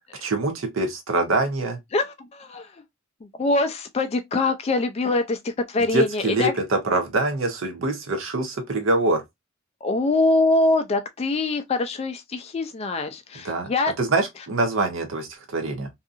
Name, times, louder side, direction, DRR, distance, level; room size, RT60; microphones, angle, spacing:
voice 1, 0.2-1.8 5.9-9.2 13.4-13.7 14.0-15.9, right 2 dB, 70° right, 0.6 m, -24 dB
voice 2, 1.9-2.8 3.2-6.5 9.8-13.9, left 2 dB, 30° left, 0.3 m, -24 dB
2.7 x 2.4 x 2.4 m
head